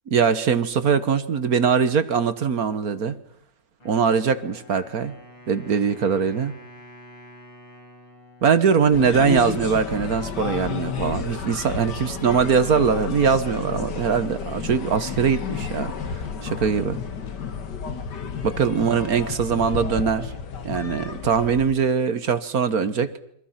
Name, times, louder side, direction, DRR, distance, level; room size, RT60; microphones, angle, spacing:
voice 1, 0.1-3.2 3.8-5.1 5.5-6.5 8.4-17.0 18.4-20.3 20.6-23.1, right 6 dB, 55° right, 12 dB, 1.7 m, -22 dB
Wind instrument woodwind instrument, 3.8-9.8, left 1 dB, 90° left, 6.6 m, -48 dB
sound 1, 8.9-21.7, left 6 dB, 70° left, 2.2 m, -32 dB
29.5 x 24.5 x 5.8 m, 0.67 s
omnidirectional pair, 1.9 m